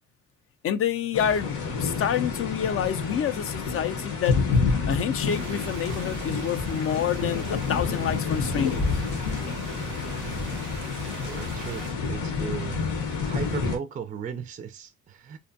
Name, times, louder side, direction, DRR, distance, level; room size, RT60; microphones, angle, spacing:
voice 1, 0.6-4.4 4.9-9.0, left 9 dB, 50° left, 0.4 m, -28 dB
sound 1, 1.1-13.8, left 4 dB, 85° left, 0.9 m, -29 dB
sound 2, 5.3-11.9, right 9 dB, 85° right, 0.5 m, -42 dB
voice 2, 11.2-12.9 13.2-15.4, right 7 dB, 25° right, 0.3 m, -36 dB
2.5 x 2.2 x 2.5 m
cardioid pair, 90°, 30 cm